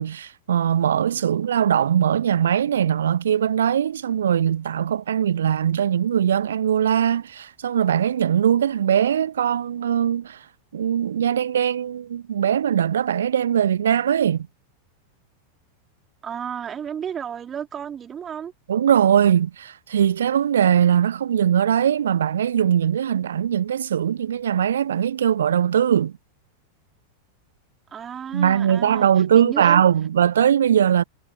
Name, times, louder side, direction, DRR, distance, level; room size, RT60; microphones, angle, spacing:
voice 1, 0.0-10.4 10.7-14.5 18.7-26.1 28.3-31.0, right 9 dB, 65° right, 0.7 m, -20 dB
voice 2, 16.2-18.5 27.9-29.1 29.3-29.8, right 8 dB, 25° right, 3.1 m, -32 dB
figure-of-eight pair, 90°, 0 cm